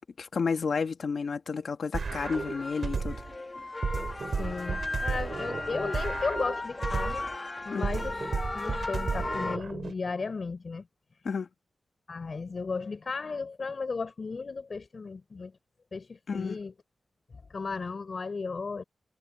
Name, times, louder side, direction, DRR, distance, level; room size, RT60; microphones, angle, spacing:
voice 1, 0.2-3.2 7.7-7.9 11.3-11.5 16.3-16.6, left 5 dB, 65° left, 1.9 m, -31 dB
sound 1, 1.9-3.4 3.8-7.4 7.8-9.9, right 5 dB, 55° right, 4.3 m, -33 dB
School Band Warm-Up, 2.2-9.6, left 2 dB, 25° left, 1.5 m, -36 dB
voice 2, 4.2-7.3 7.6-10.9 12.1-15.5 15.9-16.7 17.5-18.8, left 4 dB, 45° left, 4.4 m, -35 dB
wide cardioid pair, 145°, 0 cm